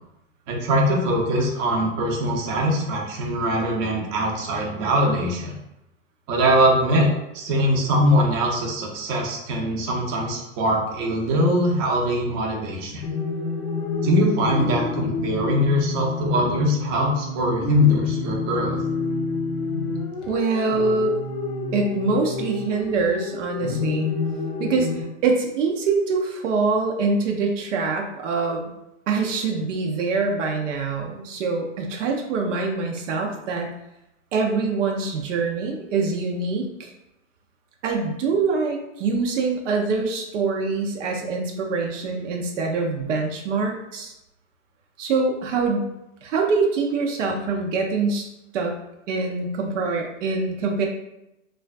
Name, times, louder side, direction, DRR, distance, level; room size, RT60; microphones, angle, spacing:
voice 1, 0.5-5.5 6.3-7.1 7.3-13.0 14.0-18.8, equal, 35° right, -1 dB, 0.6 m, -22 dB
sound 1, 13.0-25.0, left 4 dB, 35° left, 0.4 m, -28 dB
voice 2, 20.3-21.1 21.7-24.1 24.6-24.9 25.2-28.7 29.1-33.7 34.3-36.9 37.8-44.1 45.0-45.9 46.2-48.7 49.1-50.9, right 4 dB, 75° right, 1 dB, 0.5 m, -24 dB
2.4 x 2.2 x 2.4 m, 0.89 s
hypercardioid pair, 125°, 37 cm